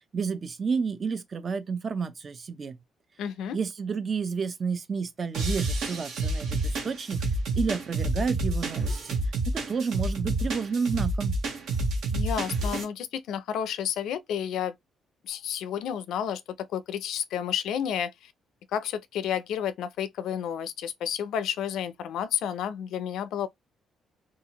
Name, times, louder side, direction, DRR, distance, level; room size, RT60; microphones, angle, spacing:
voice 1, 0.1-2.8 3.5-7.2 7.5-9.2 9.5-11.4, right 5 dB, 40° right, 0.5 m, -30 dB
voice 2, 3.2-3.6 12.1-14.7 15.2-18.3 18.7-23.5, left 9 dB, 80° left, 0.4 m, -31 dB
sound 1, 5.3-12.8, right 2 dB, 75° right, 1.1 m, -29 dB
2.6 x 2.4 x 2.8 m
cardioid pair, 90°, 0 cm